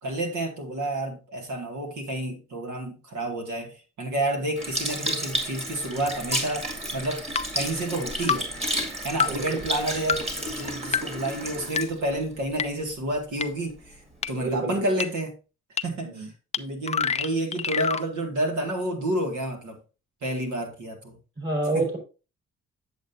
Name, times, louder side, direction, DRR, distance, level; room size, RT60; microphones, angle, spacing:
voice 1, 0.0-6.7 6.9-7.2 7.5-8.5 9.0-14.0 14.3-15.3 15.8-16.3 16.6-19.8 20.2-21.2 21.7-21.9, right 1 dB, 75° right, 2.1 m, -29 dB
Sink (filling or washing) / Liquid, 4.6-13.1 13.8-13.9, right 1 dB, 20° right, 2.0 m, -32 dB
sound 1, 6.3-6.4 7.3-7.5 8.3-8.4 9.2-9.3 10.1-10.2 10.9-11.0 11.8-11.9 12.6-12.7 13.4-13.5 14.2-14.3 15.0-15.1 15.8-15.9 16.5-16.6 16.9-18.0, left 6 dB, 25° left, 0.4 m, -25 dB
voice 2, 9.2-9.6 14.3-14.8 16.0-16.3 21.4-22.0, right 2 dB, 45° right, 4.6 m, -28 dB
7.9 x 7.5 x 2.7 m
cardioid pair, 95°, 30 cm